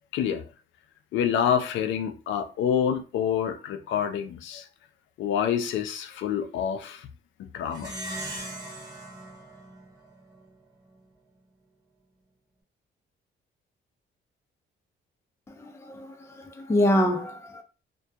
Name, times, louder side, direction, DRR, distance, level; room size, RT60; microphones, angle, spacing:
voice 1, 0.1-0.4 1.1-4.7 5.2-7.1 7.4-8.0, left 8 dB, 75° left, 0.4 m, -27 dB
Plucked string instrument, 7.7-10.5, right 1 dB, 20° right, 1.1 m, -39 dB
voice 2, 15.6-17.6, left 1 dB, 15° left, 0.4 m, -26 dB
2.2 x 2.1 x 2.6 m
cardioid pair, 90°, 20 cm